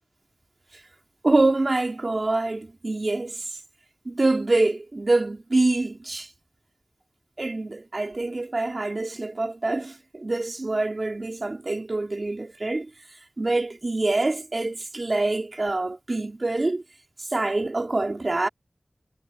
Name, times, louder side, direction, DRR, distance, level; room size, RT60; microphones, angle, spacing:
voice 1, 1.2-3.4 4.1-6.3 7.4-12.9 13.4-16.8 17.3-18.5, right 2 dB, 50° right, 3.6 m, -25 dB
wide cardioid pair, 50°, 0 cm